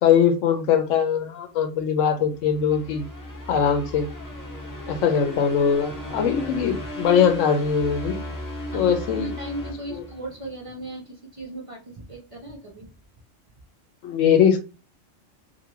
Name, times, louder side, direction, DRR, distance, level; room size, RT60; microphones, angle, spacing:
voice 1, 0.0-3.0 3.5-4.1 4.9-8.2 8.7-9.3 9.9-10.0 14.0-14.6, left 7 dB, 80° left, 7 dB, 1.0 m, -21 dB
sound 1, 2.3-10.6, left 1 dB, 20° left, 0.6 m, -36 dB
voice 2, 9.1-12.9, right 1 dB, 45° right, -1 dB, 0.4 m, -37 dB
2.7 x 2.6 x 2.9 m, 0.32 s
omnidirectional pair, 1.3 m